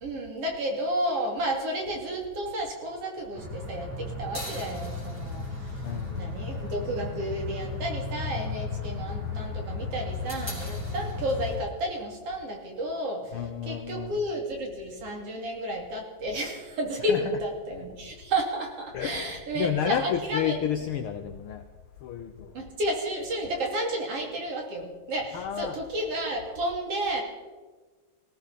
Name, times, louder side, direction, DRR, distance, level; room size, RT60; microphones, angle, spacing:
voice 1, 0.0-5.7 6.1-20.6 22.5-27.2, right 1 dB, 55° right, 1 dB, 3.8 m, -32 dB
sound 1, 3.3-11.6, left 3 dB, 5° right, 5.0 m, -35 dB
voice 2, 5.8-6.4 13.3-14.2 17.1-17.4 18.9-21.6 22.0-22.5 25.3-25.8, left 9 dB, 75° left, 8 dB, 1.2 m, -31 dB
20.0 x 17.0 x 4.2 m, 1.3 s
omnidirectional pair, 3.4 m